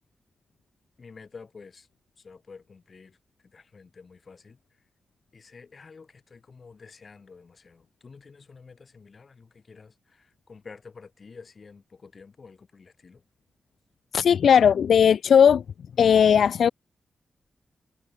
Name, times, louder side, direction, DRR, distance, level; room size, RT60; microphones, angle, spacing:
voice 1, 1.0-1.9 2.2-3.2 3.5-4.6 5.3-13.2, left 4 dB, 55° left, 2.4 m, -49 dB
voice 2, 14.1-15.6 16.0-16.7, left 7 dB, 80° left, 0.3 m, -17 dB
cardioid pair, 55°, 0 cm